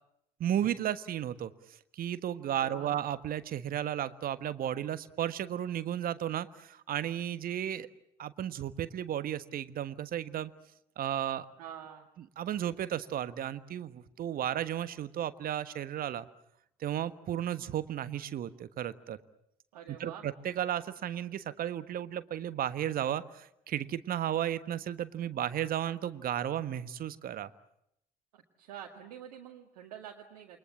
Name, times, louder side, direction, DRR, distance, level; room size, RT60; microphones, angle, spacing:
voice 1, 0.4-1.5 1.9-7.9 8.2-10.5 11.0-11.4 12.4-16.3 16.8-19.2 19.9-27.5, right 11 dB, 45° right, 13 dB, 1.4 m, -34 dB
voice 2, 2.4-2.9 11.6-12.1 19.7-20.2 28.3-30.6, right 9 dB, 70° right, 2 dB, 2.1 m, -47 dB
28.5 x 23.5 x 7.5 m, 0.77 s
figure-of-eight pair, 55°, 20 cm